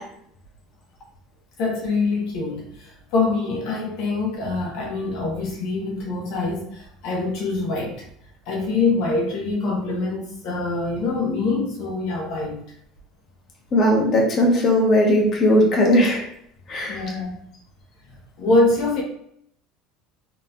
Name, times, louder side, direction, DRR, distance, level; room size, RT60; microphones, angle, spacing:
voice 1, 1.6-8.1 8.5-12.6 16.9-17.3 18.1-19.0, left 3 dB, 60° left, -1 dB, 1.1 m, -24 dB
voice 2, 13.7-16.2 16.7-17.0, left 1 dB, 30° left, -2 dB, 1.1 m, -18 dB
3.9 x 3.3 x 2.7 m, 0.71 s
cardioid pair, 150°, 0 cm